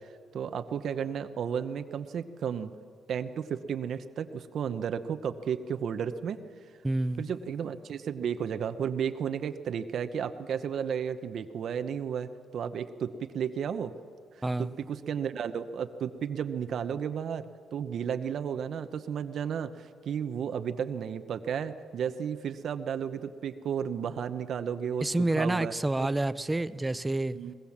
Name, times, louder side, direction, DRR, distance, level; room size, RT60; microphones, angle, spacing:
voice 1, 0.3-2.7 3.1-6.4 7.2-13.9 14.4-17.4 17.7-25.1 25.4-25.7 27.3-27.5, right 7 dB, 65° right, 10 dB, 0.9 m, -33 dB
voice 2, 6.8-7.2 14.4-14.8 25.0-27.4, right 2 dB, 15° right, 14 dB, 0.7 m, -28 dB
22.5 x 21.0 x 7.4 m, 2.2 s
cardioid pair, 90°, 0 cm